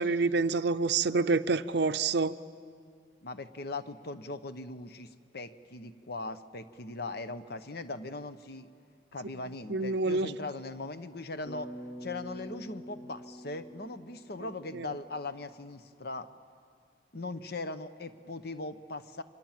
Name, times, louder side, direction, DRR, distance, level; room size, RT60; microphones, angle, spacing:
voice 1, 0.0-2.4 9.7-10.3 14.7-14.9, right 4 dB, 60° right, 12 dB, 0.6 m, -27 dB
voice 2, 3.2-8.7 9.1-11.7 12.0-16.3 17.1-19.2, left 2 dB, 55° left, 11 dB, 1.0 m, -40 dB
Bass guitar, 11.5-15.6, equal, 75° left, 4.2 m, -46 dB
29.0 x 25.0 x 7.5 m, 2.2 s
head